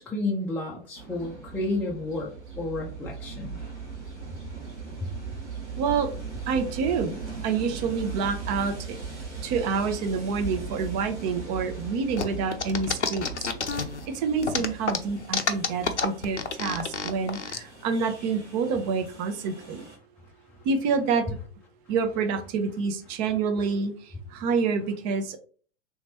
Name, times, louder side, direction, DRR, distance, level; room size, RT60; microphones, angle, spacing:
voice 1, 0.0-3.5 5.0-5.1, left 2 dB, 5° left, -3 dB, 0.4 m, -31 dB
Train, 0.9-20.0, right 5 dB, 85° right, 1.7 m, -39 dB
voice 2, 5.8-6.1 6.5-7.2 7.4-9.0 9.4-13.3 14.1-19.8 20.6-21.4 21.9-25.4, right 5 dB, 35° right, 6 dB, 0.7 m, -27 dB
sound 1, 12.2-14.0 14.4-17.6, left 5 dB, 85° left, 0.6 m, -28 dB
3.4 x 2.9 x 2.9 m, 0.42 s
figure-of-eight pair, 95°, 34 cm